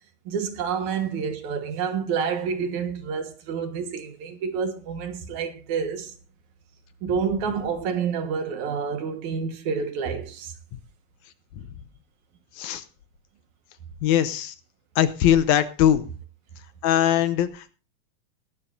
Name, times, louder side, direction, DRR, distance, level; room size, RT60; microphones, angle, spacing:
voice 1, 0.3-6.1 7.0-10.5, right 6 dB, 70° right, 2.7 m, -28 dB
voice 2, 14.0-14.5 15.0-16.0 16.8-17.7, left 10 dB, 75° left, 2.1 m, -21 dB
20.0 x 11.5 x 2.6 m
omnidirectional pair, 3.6 m